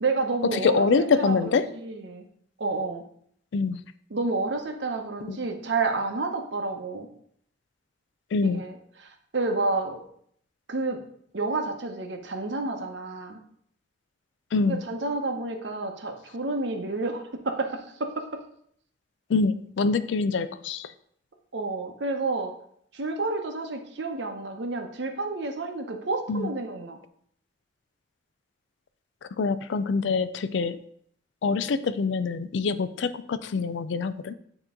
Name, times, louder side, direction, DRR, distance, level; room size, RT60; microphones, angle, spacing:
voice 1, 0.0-2.2 2.6-3.0 4.1-7.1 8.4-10.0 10.7-11.0 11.3-13.4 14.7-18.2 21.5-22.5 22.9-27.0, right 3 dB, 65° right, 4 dB, 0.8 m, -30 dB
voice 2, 0.6-1.7 3.5-3.8 5.3-5.4 8.3-8.6 14.5-14.8 19.3-20.9 26.3-26.5 29.4-30.8 31.4-34.3, left 4 dB, 70° left, 13 dB, 0.4 m, -25 dB
8.9 x 3.0 x 3.7 m, 0.65 s
head